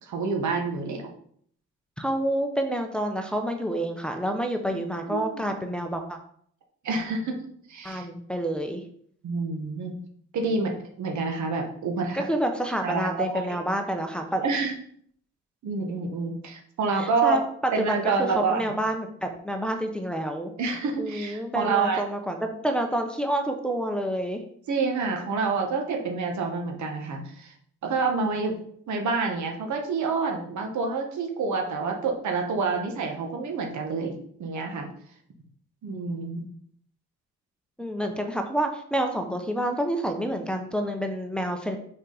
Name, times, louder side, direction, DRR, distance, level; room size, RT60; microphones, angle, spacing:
voice 1, 0.0-1.1 5.1-5.4 6.8-7.4 7.7-8.1 9.2-10.0 10.3-12.2 12.8-13.6 14.4-14.8 15.6-17.4 17.7-18.6 20.6-22.0 24.7-27.5 27.8-28.6 28.9-34.9 35.8-36.4, right 4 dB, 70° right, 2 dB, 1.4 m, -28 dB
voice 2, 2.0-6.2 7.8-8.8 12.1-14.4 17.0-17.4 17.8-20.5 21.0-24.4 37.8-41.8, right 1 dB, 5° left, 4 dB, 0.8 m, -28 dB
5.3 x 4.9 x 4.0 m, 0.62 s
cardioid pair, 90°, 30 cm